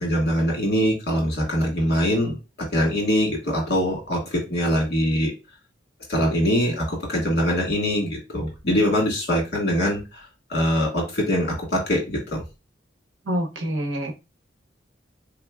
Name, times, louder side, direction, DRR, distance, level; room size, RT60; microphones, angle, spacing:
voice 1, 0.0-2.4 2.7-5.3 6.1-10.2 10.5-12.4, equal, 55° left, 1.6 m, -23 dB
voice 2, 13.3-14.1, equal, 80° right, 0.8 m, -26 dB
3.7 x 2.9 x 2.3 m
head